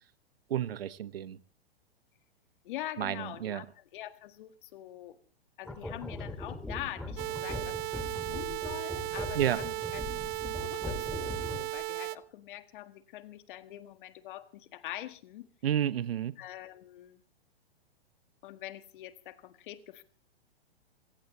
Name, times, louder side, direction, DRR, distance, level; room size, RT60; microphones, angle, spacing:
voice 1, 0.5-1.4 3.0-3.6 9.3-9.6 15.6-16.4, right 10 dB, 70° right, 17 dB, 1.2 m, -31 dB
voice 2, 2.6-5.2 5.6-8.0 8.3-15.5 16.4-17.2 18.4-20.0, left 14 dB, 55° left, 11 dB, 1.7 m, -44 dB
sound 1, 5.6-11.8, left 2 dB, 5° left, 2.3 m, -40 dB
sound 2, 7.2-12.2, right 25 dB, 30° right, 0.8 m, -36 dB
27.5 x 16.5 x 3.1 m, 0.41 s
hypercardioid pair, 115°, 31 cm